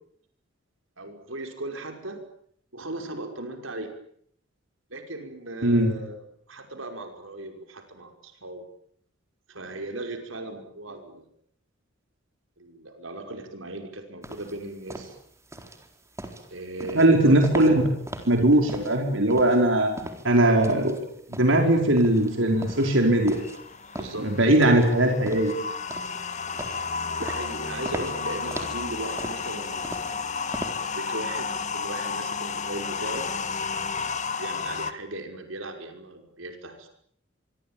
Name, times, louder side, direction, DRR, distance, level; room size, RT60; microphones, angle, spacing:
voice 1, 1.0-2.2 2.7-3.9 4.9-6.2 6.5-8.6 9.5-11.3 12.6-15.2 16.5-17.4 24.0-24.3 27.2-30.0 30.8-33.3 34.3-36.9, right 2 dB, 85° right, 5 dB, 5.6 m, -37 dB
sound 1, 14.2-31.1, right 1 dB, 15° right, 4.1 m, -39 dB
voice 2, 16.9-17.7 18.3-19.9 20.2-21.0 21.3-23.4 24.2-25.5, right 1 dB, 70° right, 3 dB, 5.3 m, -20 dB
sound 2, 22.1-34.9, left 5 dB, 40° left, 1.7 m, -32 dB
26.0 x 24.5 x 9.0 m, 0.66 s
head